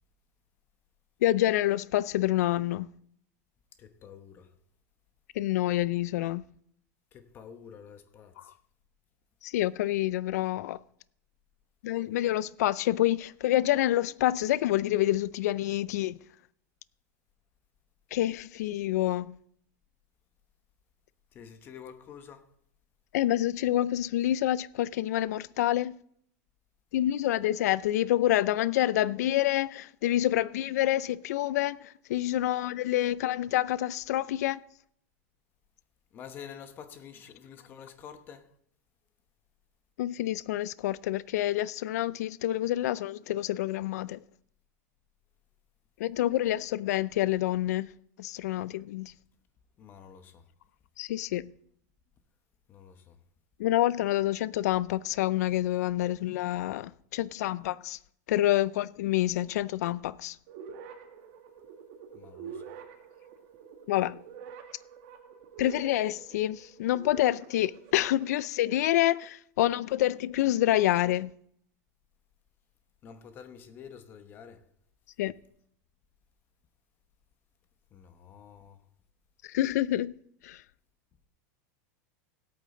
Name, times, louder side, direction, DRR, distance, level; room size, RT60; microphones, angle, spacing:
voice 1, 1.2-2.9 5.4-6.4 9.4-10.8 11.8-16.2 18.1-19.3 23.1-25.9 26.9-34.6 40.0-44.2 46.0-47.9 48.2-49.1 51.0-51.5 53.6-58.0 58.3-60.4 63.9-64.2 65.6-71.3 75.2-75.3 79.4-80.1 80.4-80.6, left 14 dB, 75° left, 0.4 m, -27 dB
voice 2, 3.8-4.5 7.1-8.6 21.3-22.4 36.1-38.5 49.8-50.5 52.7-53.2 62.1-62.6 73.0-74.7 77.9-78.9, left 7 dB, 20° left, 1.0 m, -48 dB
sound 1, 60.5-68.4, right 7 dB, 50° right, 1.7 m, -47 dB
17.5 x 8.5 x 3.8 m
supercardioid pair, 170°, 9 cm